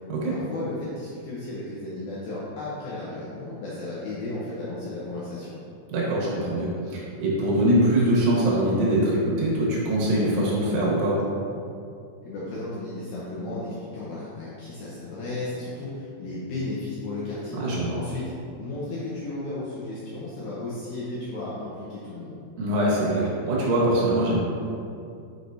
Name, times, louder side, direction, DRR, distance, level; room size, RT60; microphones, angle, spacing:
voice 1, 0.3-5.5 12.2-17.6 18.0-18.2 18.6-22.4, left 2 dB, 75° left, -9 dB, 2.2 m, -34 dB
voice 2, 5.9-11.2 17.5-17.9 22.6-24.4, right 1 dB, 80° right, -5 dB, 3.8 m, -23 dB
8.0 x 6.1 x 2.7 m, 2.5 s
omnidirectional pair, 5.3 m